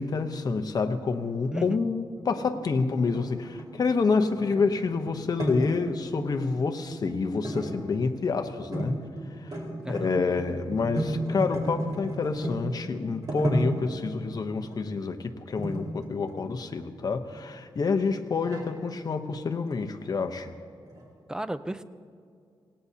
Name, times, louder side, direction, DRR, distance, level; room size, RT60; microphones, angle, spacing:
voice 1, 0.0-9.0 9.4-9.6 9.9-20.5, left 4 dB, 45° left, 6 dB, 0.9 m, -28 dB
voice 2, 1.5-1.8 9.8-10.1 21.3-21.8, right 1 dB, 10° right, 12 dB, 0.6 m, -33 dB
sound 1, 2.2-6.3 6.6-7.2 7.4-8.4 8.7-8.9 9.2-12.6 13.0-14.1 14.7-14.9 15.6-16.8 17.3-17.4 18.0-18.7 19.5-19.7 20.0-20.1 20.4-20.5 20.9-21.0, right 1 dB, 45° right, 4.3 m, -33 dB
26.0 x 18.0 x 2.9 m, 2.3 s
wide cardioid pair, 115°, 9 cm